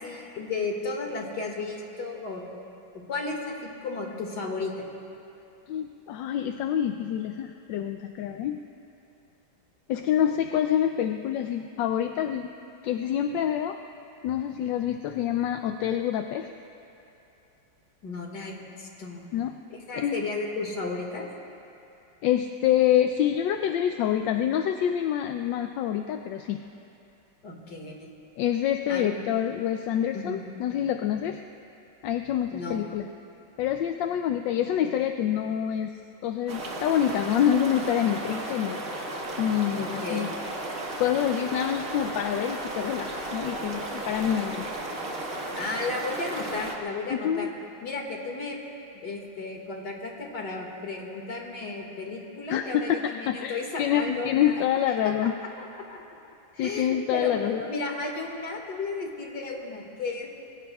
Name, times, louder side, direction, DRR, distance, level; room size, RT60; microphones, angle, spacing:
voice 1, 0.0-2.4 2.9-4.7 18.0-19.3 19.7-21.3 27.4-28.1 28.9-29.2 30.1-30.4 32.5-32.9 39.8-40.3 45.5-47.5 47.8-48.6 48.9-54.6 55.0-55.1 55.6-56.0 56.5-60.3, left 3 dB, 55° left, 0 dB, 2.5 m, -34 dB
voice 2, 5.7-8.6 9.9-12.5 12.8-13.8 14.2-16.5 19.3-19.5 19.9-20.2 22.2-26.6 28.4-31.4 32.0-33.1 33.6-35.9 36.2-38.8 39.4-40.3 41.0-44.6 47.1-47.5 52.5-53.0 53.3-55.3 56.6-57.6, left 10 dB, 75° left, 6 dB, 1.2 m, -26 dB
sound 1, 36.5-46.8, right 2 dB, 45° right, 1.9 m, -34 dB
27.5 x 22.0 x 2.3 m, 2.9 s
omnidirectional pair, 2.2 m